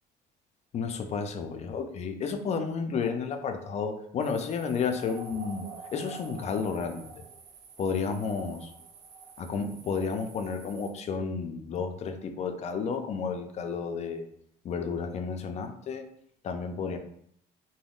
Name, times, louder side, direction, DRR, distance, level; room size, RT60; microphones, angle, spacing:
voice 1, 0.7-7.1 7.8-8.7 9.4-14.3 14.6-16.0 16.4-17.0, left 5 dB, 40° left, 6 dB, 0.4 m, -32 dB
sound 1, 4.2-10.9, right 4 dB, 80° right, 0.5 m, -47 dB
3.4 x 2.1 x 2.4 m, 0.70 s
cardioid pair, 105°, 18 cm